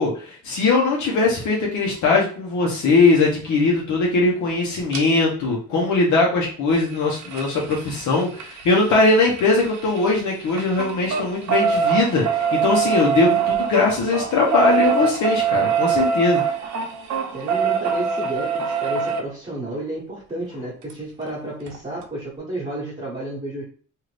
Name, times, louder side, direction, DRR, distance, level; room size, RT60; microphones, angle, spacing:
voice 1, 0.0-16.4, left 3 dB, 70° left, -2 dB, 0.9 m, -20 dB
sound 1, 4.9-5.0 6.7-10.2 10.5-19.2 20.9-21.0 21.3-21.4 21.7-21.8, right 6 dB, 65° right, 0.6 m, -23 dB
voice 2, 17.3-23.6, right 1 dB, 20° right, -8 dB, 1.2 m, -31 dB
2.6 x 2.4 x 3.3 m, 0.42 s
cardioid pair, 90°, 30 cm